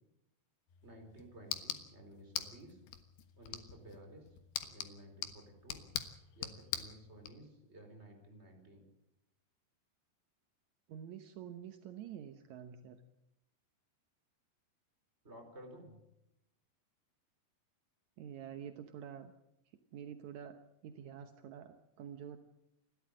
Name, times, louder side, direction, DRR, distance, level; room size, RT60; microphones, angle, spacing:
sound 1, 0.7-7.3, left 10 dB, 70° left, 3.3 m, -44 dB
voice 1, 0.8-2.8 3.4-4.3 4.7-5.9 6.3-8.8 15.2-16.0, right 1 dB, 15° right, 4 dB, 4.7 m, -54 dB
voice 2, 10.9-13.0 18.2-19.3 19.9-22.4, right 9 dB, 75° right, 8 dB, 1.7 m, -48 dB
29.0 x 13.0 x 7.6 m, 0.85 s
omnidirectional pair, 4.8 m